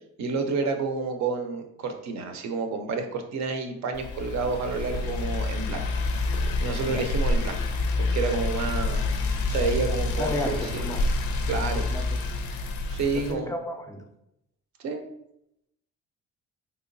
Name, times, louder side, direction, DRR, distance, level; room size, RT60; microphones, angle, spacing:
voice 1, 0.2-5.8 6.3-7.6 8.1-9.0 9.5-10.9 11.5-11.8 12.9-13.5 14.8-15.0, right 4 dB, 65° right, 6 dB, 0.5 m, -29 dB
sound 1, 3.9-13.3, left 2 dB, 85° left, 0.5 m, -28 dB
voice 2, 10.2-11.1 11.7-12.2 13.1-14.0, left 1 dB, 10° left, 5 dB, 0.4 m, -33 dB
3.3 x 2.9 x 2.6 m, 0.81 s
cardioid pair, 90°, 30 cm